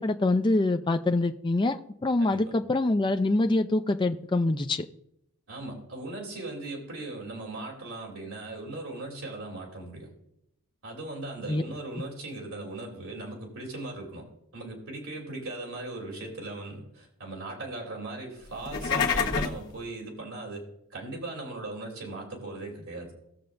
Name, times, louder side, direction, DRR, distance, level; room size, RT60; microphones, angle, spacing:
voice 1, 0.0-4.9 11.5-11.6, left 2 dB, 20° left, 7 dB, 0.4 m, -25 dB
voice 2, 2.2-2.5 5.5-10.1 10.8-14.3 14.5-23.1, right 2 dB, 70° right, -1 dB, 3.2 m, -38 dB
sound 1, 18.5-19.7, left 6 dB, 55° left, 1.4 m, -27 dB
19.0 x 6.8 x 2.6 m, 0.76 s
head